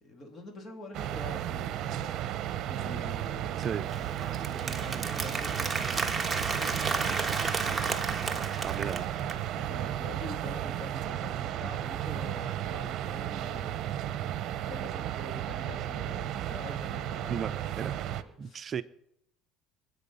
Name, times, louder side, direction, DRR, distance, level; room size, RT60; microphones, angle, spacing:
voice 1, 0.0-3.6 4.5-9.0 9.5-18.7, left 2 dB, 35° left, 2.8 m, -47 dB
sound 1, 0.9-18.2, right 11 dB, 55° right, 0.9 m, -34 dB
Applause, 3.6-9.4, right 4 dB, 15° right, 1.4 m, -33 dB
voice 2, 3.6-3.9 8.6-9.1 17.3-17.9 18.4-18.8, right 7 dB, 35° right, 0.6 m, -35 dB
24.5 x 8.3 x 5.5 m
cardioid pair, 125°, 0 cm